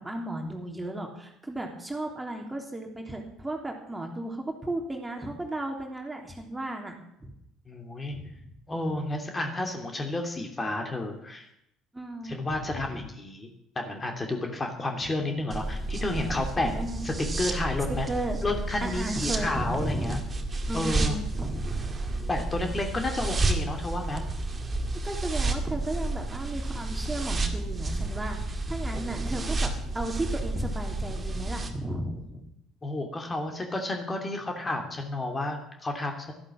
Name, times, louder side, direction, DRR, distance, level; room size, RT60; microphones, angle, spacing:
voice 1, 0.0-7.3 8.1-8.4 11.9-12.7 15.0-15.1 16.6-17.0 17.9-18.4 18.8-20.2 20.7-21.9 25.0-32.5, right 1 dB, 10° right, 2 dB, 3.2 m, -35 dB
voice 2, 7.7-8.2 8.7-11.5 12.2-13.5 13.7-16.7 17.0-18.1 18.4-20.2 20.7-21.2 22.3-24.2 28.9-29.5 32.8-36.3, left 2 dB, 25° left, 3 dB, 2.9 m, -31 dB
sound 1, 15.5-31.7, right 2 dB, 25° right, 2.1 m, -31 dB
13.5 x 11.5 x 7.3 m, 0.77 s
figure-of-eight pair, 55°, 0 cm